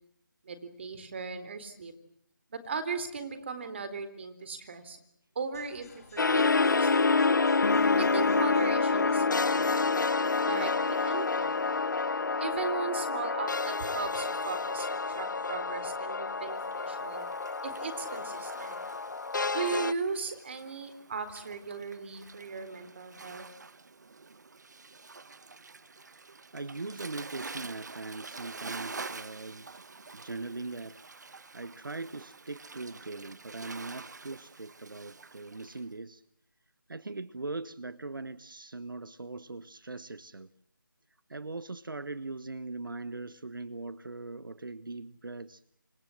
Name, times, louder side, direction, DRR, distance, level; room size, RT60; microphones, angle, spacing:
voice 1, 0.4-1.9 2.5-5.0 5.4-5.9 6.1-7.2 8.0-9.7 10.4-11.7 12.4-17.3 17.6-18.8 19.5-23.4, right 5 dB, 30° right, 13 dB, 3.9 m, -37 dB
sound 1, 5.5-9.9, left 4 dB, 45° left, 4.4 m, -55 dB
sound 2, 6.2-19.9, left 4 dB, 65° left, 1.1 m, -28 dB
Waves surf, 16.4-35.8, right 4 dB, 55° right, 1.3 m, -47 dB
voice 2, 26.5-29.8 30.1-31.0 31.5-36.2 36.9-40.5 41.3-45.6, right 3 dB, 75° right, 15 dB, 1.3 m, -40 dB
28.5 x 26.0 x 7.8 m, 0.69 s
figure-of-eight pair, 165°, 11 cm